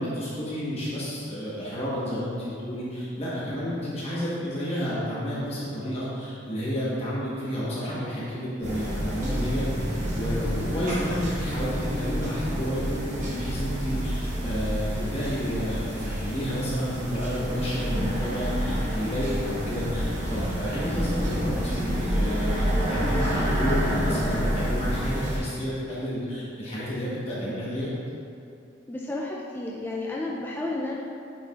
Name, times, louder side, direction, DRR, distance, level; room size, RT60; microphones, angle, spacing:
voice 1, 0.0-27.9, equal, 35° left, -8 dB, 1.1 m, -31 dB
sound 1, 8.6-25.4, equal, 40° right, 1.2 m, -28 dB
voice 2, 28.9-30.9, left 2 dB, 10° left, -4 dB, 0.3 m, -32 dB
8.8 x 4.7 x 2.4 m, 2.5 s
head